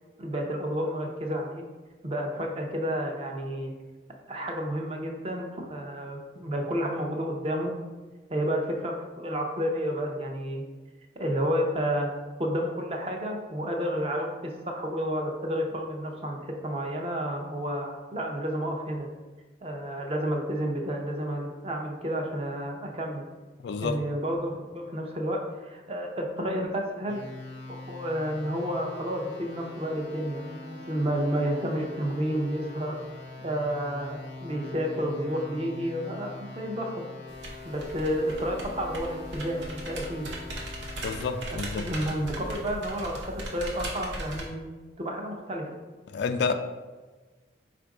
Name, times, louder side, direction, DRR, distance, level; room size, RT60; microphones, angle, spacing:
voice 1, 0.2-1.6 2.0-3.7 4.3-7.7 8.3-10.6 11.2-12.1 12.4-19.1 19.6-23.2 23.8-27.2 27.7-33.0 33.4-37.0 37.6-40.3 41.5-45.7, equal, 30° right, 1 dB, 0.5 m, -31 dB
voice 2, 23.6-24.0 41.0-41.9 46.1-46.5, left 5 dB, 65° left, 8 dB, 0.3 m, -29 dB
sound 1, 27.1-41.4, left 3 dB, 85° left, 0.8 m, -43 dB
sound 2, 37.3-44.5, right 1 dB, 75° right, 0.9 m, -38 dB
4.3 x 2.5 x 4.7 m, 1.3 s
head